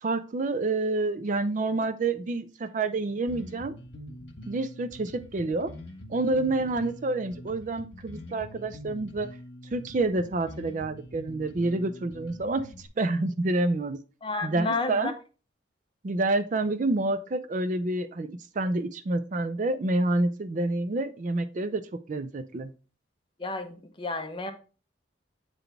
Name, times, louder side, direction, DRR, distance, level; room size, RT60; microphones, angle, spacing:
voice 1, 0.0-3.7 4.5-5.7 6.1-9.3 9.7-12.7 13.0-14.0 14.4-15.1 16.0-18.3 18.6-21.8 22.1-22.7, right 2 dB, 40° right, 0.4 m, -28 dB
Bass guitar, 3.3-12.9, left 1 dB, 70° left, 1.3 m, -44 dB
voice 2, 14.2-15.1 23.4-24.5, left 3 dB, 25° left, 0.7 m, -31 dB
8.1 x 3.8 x 3.4 m
head